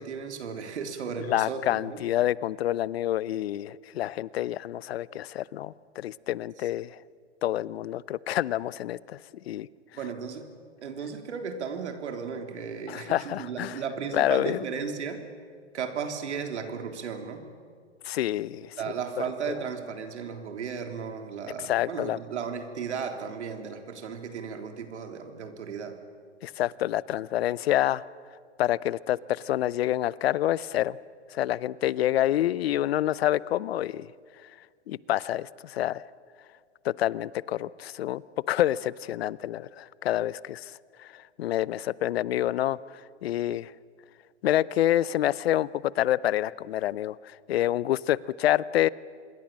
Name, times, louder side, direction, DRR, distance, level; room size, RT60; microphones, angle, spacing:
voice 1, 0.0-2.0 9.9-10.4 10.8-15.2 15.7-17.4 18.8-26.0, right 6 dB, 75° right, 5 dB, 3.5 m, -35 dB
voice 2, 1.2-7.0 7.4-9.2 9.5-9.7 12.9-13.8 14.1-14.7 18.0-18.8 19.2-19.5 21.6-22.2 26.4-28.0 28.6-31.0 31.3-34.1 34.9-36.0 36.8-38.2 38.5-40.7 41.0-42.8 43.2-43.7 44.4-45.7 46.0-48.9, left 13 dB, 60° left, 21 dB, 0.7 m, -27 dB
26.5 x 21.5 x 7.5 m, 2.1 s
hypercardioid pair, 135°, 35 cm